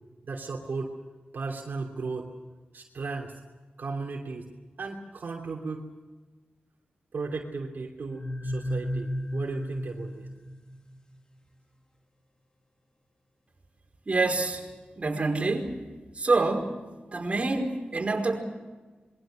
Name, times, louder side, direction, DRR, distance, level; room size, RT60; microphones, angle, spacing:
voice 1, 0.3-0.9 1.3-2.3 2.7-3.3 3.8-4.5 4.8-5.9 7.1-10.3, right 4 dB, 70° right, 0 dB, 3.0 m, -35 dB
sound 1, 8.1-10.9, equal, 25° left, 3.3 m, -33 dB
voice 2, 14.0-14.6 15.0-15.8 16.1-16.7 17.1-18.4, right 3 dB, 35° right, 1 dB, 5.0 m, -26 dB
27.0 x 22.5 x 6.4 m, 1.3 s
wide cardioid pair, 95°, 3 cm